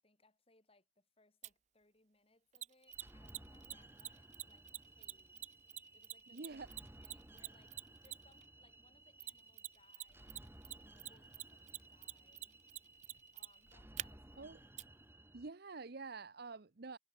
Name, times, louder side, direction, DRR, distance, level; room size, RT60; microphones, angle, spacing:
voice 1, 0.0-5.5 5.9-6.7 7.0-14.7, left 2 dB, 30° left, 3.2 m, -72 dB
Mechanisms, 1.4-1.5 2.5-8.4 9.2-10.0 10.3-14.0 14.8-14.9, right 13 dB, 35° right, 0.4 m, -45 dB
sound 1, 2.9-15.5, right 1 dB, 10° right, 2.4 m, -59 dB
sound 2, 3.3-14.1, left 1 dB, 55° left, 5.8 m, -85 dB
voice 2, 6.3-6.7 14.4-14.6 15.3-17.0, right 4 dB, 55° right, 0.8 m, -47 dB
head